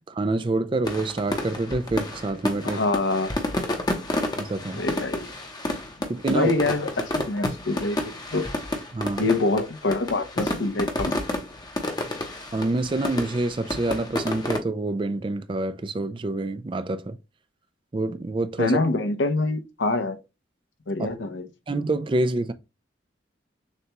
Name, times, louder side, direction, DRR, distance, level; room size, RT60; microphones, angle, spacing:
voice 1, 0.1-2.8 4.4-4.8 6.1-6.5 8.9-9.3 12.5-17.2 17.9-18.8 21.0-21.1 21.7-22.5, right 2 dB, 25° right, 0.3 m, -27 dB
sound 1, 0.9-14.6, left 1 dB, 20° left, 0.7 m, -30 dB
voice 2, 2.6-3.3 4.8-5.3 6.3-8.5 9.2-11.2 18.6-20.2 20.9-21.5, left 2 dB, 80° left, 0.7 m, -25 dB
6.5 x 2.3 x 2.9 m
head